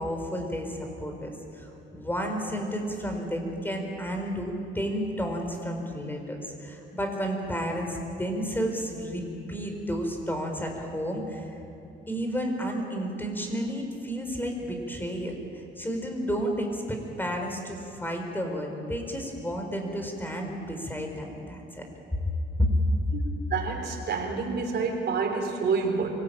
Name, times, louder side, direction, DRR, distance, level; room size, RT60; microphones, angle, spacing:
voice 1, 0.0-11.6 12.1-21.8 22.6-22.7, equal, 10° left, 3 dB, 4.7 m, -31 dB
voice 2, 23.5-26.1, right 5 dB, 55° right, 2 dB, 3.9 m, -28 dB
24.5 x 18.0 x 8.9 m, 2.6 s
cardioid pair, 90°, 20 cm